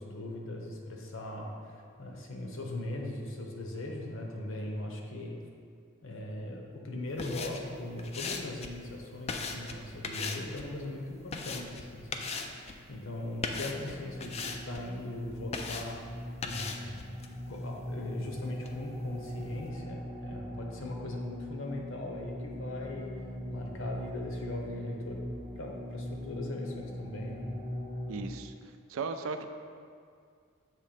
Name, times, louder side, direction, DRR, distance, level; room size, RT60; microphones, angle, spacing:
voice 1, 0.0-5.4 6.0-14.4 14.7-16.0 16.4-17.1 17.5-25.2 25.5-27.5, left 1 dB, 65° left, 0 dB, 0.9 m, -40 dB
sound 1, 7.1-19.7, left 4 dB, 30° left, 0.4 m, -41 dB
sound 2, 13.1-28.3, equal, 5° right, 0.8 m, -41 dB
voice 2, 28.1-28.5 28.9-29.4, right 4 dB, 70° right, 8 dB, 0.4 m, -36 dB
7.5 x 3.2 x 5.0 m, 2.2 s
head